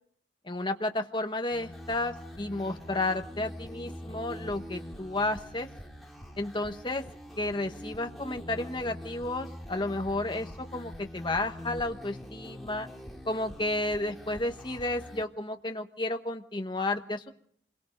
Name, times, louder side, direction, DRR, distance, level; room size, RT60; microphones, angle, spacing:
voice 1, 0.4-5.7 6.4-7.0 7.4-12.9 13.2-17.3, left 2 dB, 25° left, 6 dB, 1.3 m, -32 dB
sound 1, 1.5-15.2, equal, ahead, 2.5 m, -44 dB
27.0 x 22.0 x 5.2 m, 0.64 s
head